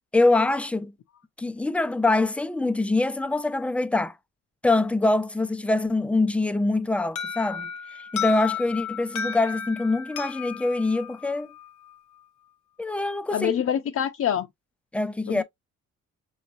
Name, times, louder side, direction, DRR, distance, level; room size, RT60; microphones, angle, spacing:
voice 1, 0.1-0.9 1.4-4.1 4.6-7.7 8.1-11.5 12.8-13.5 14.9-15.4, left 2 dB, 5° left, 0.4 m, -24 dB
Alarm, 7.2-11.9, left 8 dB, 80° left, 1.1 m, -34 dB
voice 2, 13.3-14.5 15.3-15.4, left 9 dB, 55° left, 0.7 m, -25 dB
6.3 x 3.1 x 2.6 m
cardioid pair, 90°, 30 cm